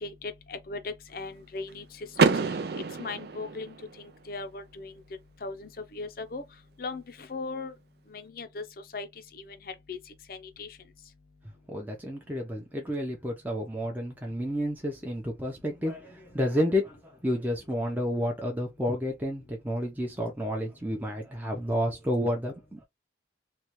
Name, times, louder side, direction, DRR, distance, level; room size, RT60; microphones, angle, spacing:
voice 1, 0.0-2.4 3.0-4.9 5.4-6.4 6.8-7.7 8.1-8.6 8.9-9.1 9.4-9.5 9.9-10.0 10.3-10.7, left 3 dB, 50° left, 0.6 m, -38 dB
Car / Door, 2.1-4.1, right 4 dB, 60° right, 0.4 m, -27 dB
voice 2, 11.7-22.8, equal, 10° right, 0.6 m, -30 dB
3.2 x 2.4 x 2.9 m
head